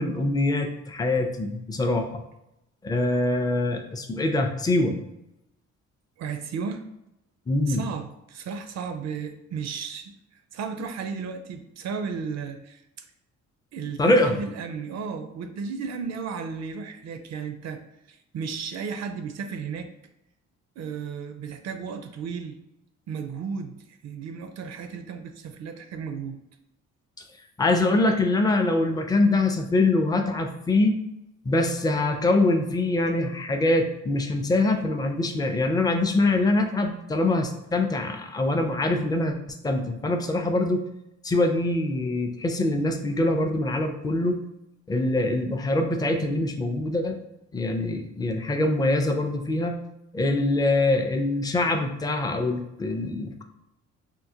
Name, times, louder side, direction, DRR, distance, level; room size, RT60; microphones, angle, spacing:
voice 1, 0.0-2.2 2.8-5.0 7.5-7.8 14.0-14.4 27.6-31.0 31.5-39.4 39.6-40.8 41.2-44.4 44.9-47.2 47.5-49.8 50.1-53.4, left 2 dB, 15° left, 4 dB, 0.4 m, -24 dB
voice 2, 6.2-6.8 7.7-10.1 10.5-12.8 13.7-17.8 18.1-19.9 20.8-22.6 23.1-26.4, right 5 dB, 60° right, 8 dB, 0.5 m, -34 dB
4.4 x 2.1 x 2.7 m, 0.87 s
cardioid pair, 90°, 30 cm